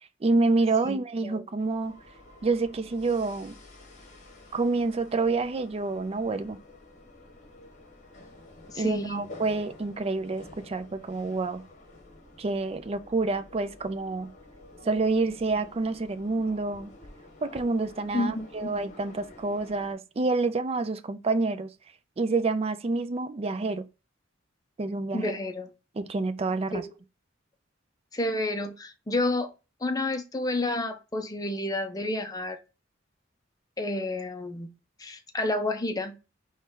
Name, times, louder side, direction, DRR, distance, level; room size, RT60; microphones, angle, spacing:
voice 1, 0.2-1.9 2.4-3.6 4.5-6.6 8.8-11.6 12.4-14.3 14.9-16.9 17.4-21.7 22.2-23.8 24.8-25.3 26.0-26.8, right 3 dB, 30° right, 0.4 m, -28 dB
voice 2, 0.8-1.4 8.7-9.3 18.1-18.7 25.1-25.7 26.7-26.8 28.1-29.5 29.8-32.6 33.8-34.7 35.0-36.2, left 2 dB, 20° left, 0.6 m, -30 dB
sound 1, 1.6-19.9, left 2 dB, 40° left, 1.2 m, -50 dB
4.2 x 3.2 x 3.6 m
head